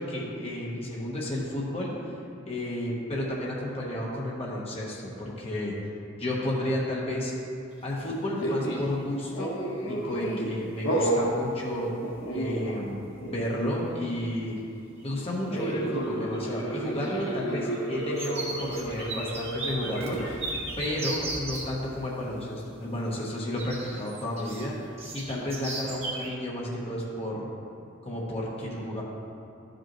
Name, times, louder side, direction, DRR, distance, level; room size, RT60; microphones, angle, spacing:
voice 1, 0.0-1.9 2.4-5.8 6.2-7.3 7.8-9.6 9.9-11.9 12.3-14.6 15.0-20.5 20.8-24.8 25.1-27.5 28.0-29.0, left 1 dB, 30° left, -4 dB, 1.0 m, -32 dB
sound 1, 7.9-8.1 8.4-9.0 11.0-11.1 11.7-11.8 12.0-12.4 12.7-13.3 13.8-13.9 15.0-15.4 15.7-21.7 23.6-26.3, right 2 dB, 30° right, 1.2 m, -37 dB
sound 2, 8.4-8.9 9.3-10.5 10.8-11.3 12.0-12.9 13.2-13.5 15.5-20.3, right 1 dB, 65° left, 1.0 m, -31 dB
11.5 x 5.1 x 3.0 m, 2.6 s
head